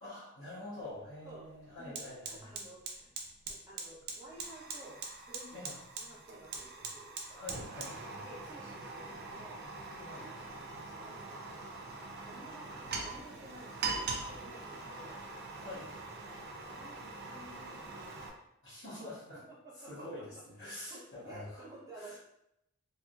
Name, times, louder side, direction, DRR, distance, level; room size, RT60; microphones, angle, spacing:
voice 1, 0.0-2.4 5.5-5.7 7.3-8.2 10.0-10.2 15.5-15.9 18.6-19.4 19.9-20.2 20.6-21.6 22.0-22.1, left 1 dB, 60° left, -11 dB, 1.4 m, -46 dB
Fire, 0.8-0.9 1.3-18.3, right 4 dB, 45° right, 0.5 m, -43 dB
voice 2, 1.8-3.1 3.5-5.0 5.3-7.4 8.2-9.6 10.1-11.6 12.2-15.1 15.6-16.0 16.7-18.2 19.5-20.1 20.6-22.2, right 1 dB, 15° right, -7 dB, 0.8 m, -53 dB
3.5 x 2.7 x 2.4 m, 0.79 s
head